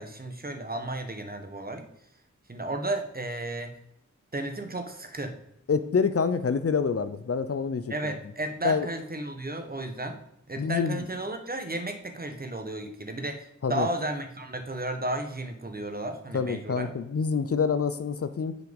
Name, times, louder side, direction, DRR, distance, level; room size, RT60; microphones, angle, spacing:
voice 1, 0.0-1.9 2.5-3.7 4.3-5.4 7.9-10.2 10.5-16.9, right 1 dB, 30° right, 6 dB, 1.2 m, -33 dB
voice 2, 5.7-7.9 8.6-8.9 10.6-11.0 13.6-13.9 16.3-18.6, left 5 dB, 50° left, 12 dB, 0.6 m, -26 dB
6.5 x 4.9 x 5.2 m, 0.78 s
wide cardioid pair, 60°, 31 cm